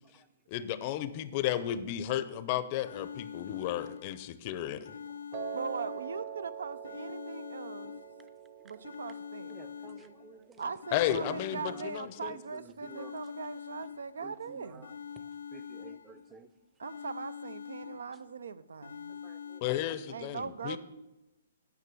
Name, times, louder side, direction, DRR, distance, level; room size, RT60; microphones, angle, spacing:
voice 1, 0.5-5.0 10.9-12.3 19.6-20.8, left 12 dB, 35° left, 13 dB, 0.5 m, -33 dB
sound 1, 2.8-4.4 4.8-6.4 6.8-8.4 8.8-10.4 10.8-12.4 12.8-14.4 14.8-16.4 16.8-18.4 18.8-19.6, left 7 dB, 85° left, 0.3 m, -45 dB
Piano, 5.3-11.5, right 8 dB, 45° right, 1.1 m, -44 dB
voice 2, 5.5-7.9 8.6-9.5 10.6-14.9 16.8-19.1 20.1-20.8, right 5 dB, 90° right, 16 dB, 0.5 m, -40 dB
voice 3, 9.5-10.6 11.1-11.4 11.7-11.9 12.3-13.1 14.2-14.9 15.5-16.5 19.2-19.6, right 5 dB, 15° right, 12 dB, 0.5 m, -50 dB
9.7 x 5.9 x 6.1 m, 1.0 s
hypercardioid pair, 150°, 0 cm